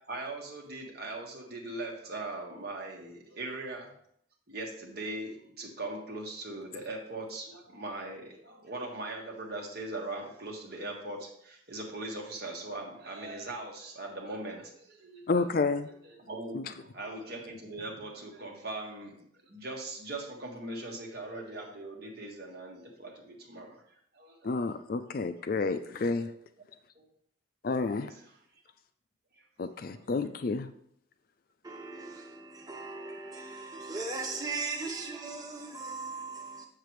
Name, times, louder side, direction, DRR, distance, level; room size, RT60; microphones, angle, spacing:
voice 1, 0.1-3.9 4.5-15.5 16.0-23.8 24.1-24.4 26.9-27.1 28.0-28.1 29.3-29.4 30.0-30.1, right 2 dB, 55° right, 1.5 m, -40 dB
voice 2, 15.3-15.9 16.5-16.6 24.4-26.3 27.6-28.1 29.6-30.7, left 3 dB, 50° left, 0.4 m, -30 dB
voice 3, 31.6-36.7, right 3 dB, 20° right, 0.6 m, -38 dB
6.7 x 6.7 x 3.2 m
head